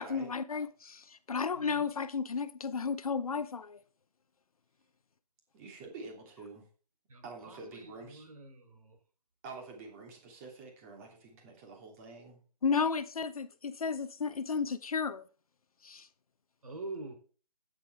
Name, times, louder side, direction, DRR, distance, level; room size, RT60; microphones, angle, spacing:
voice 1, 0.0-3.8 12.6-15.2 15.8-16.1, left 5 dB, 60° left, 0.9 m, -33 dB
voice 2, 1.5-1.9 7.1-9.0 16.6-17.1, right 2 dB, 60° right, 3.3 m, -46 dB
voice 3, 5.5-6.7 7.2-8.2 9.4-12.4, right 3 dB, 20° right, 2.9 m, -47 dB
11.0 x 9.9 x 3.4 m
figure-of-eight pair, 150°, 21 cm